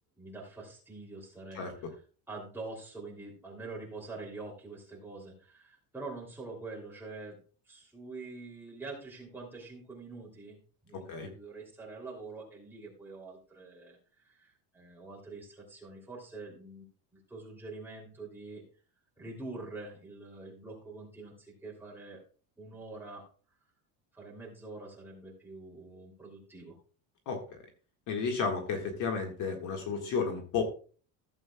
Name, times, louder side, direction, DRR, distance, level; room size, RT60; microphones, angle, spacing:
voice 1, 0.2-1.6 2.3-7.4 7.7-10.6 10.8-14.0 14.2-16.8 17.3-18.6 19.2-22.2 22.6-23.2 24.1-26.8, right 3 dB, 5° right, -4 dB, 2.9 m, -45 dB
voice 2, 1.5-1.9 10.9-11.3 27.3-27.6 28.1-30.6, left 5 dB, 50° left, 3 dB, 1.8 m, -33 dB
15.0 x 7.6 x 2.3 m, 0.39 s
cardioid pair, 170°, 41 cm